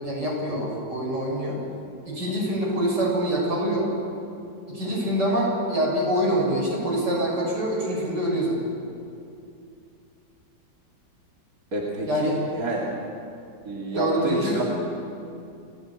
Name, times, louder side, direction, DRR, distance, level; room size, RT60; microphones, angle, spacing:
voice 1, 0.0-1.6 2.0-3.9 4.7-8.6 12.1-12.3 13.9-14.6, equal, 85° right, -3 dB, 7.7 m, -25 dB
voice 2, 11.7-12.8 13.6-14.6, right 2 dB, 55° right, -3 dB, 2.9 m, -28 dB
29.5 x 15.5 x 8.8 m, 2.6 s
omnidirectional pair, 1.8 m